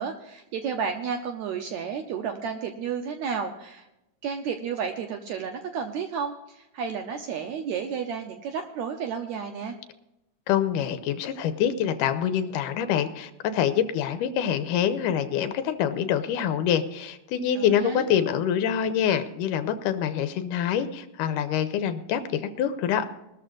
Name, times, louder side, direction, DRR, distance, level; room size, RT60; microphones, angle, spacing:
voice 1, 0.0-3.9 4.2-9.8 17.6-18.1, right 6 dB, 70° right, 6 dB, 1.9 m, -32 dB
voice 2, 10.5-23.1, left 9 dB, 80° left, 10 dB, 2.3 m, -25 dB
20.5 x 13.5 x 2.5 m, 0.92 s
omnidirectional pair, 3.8 m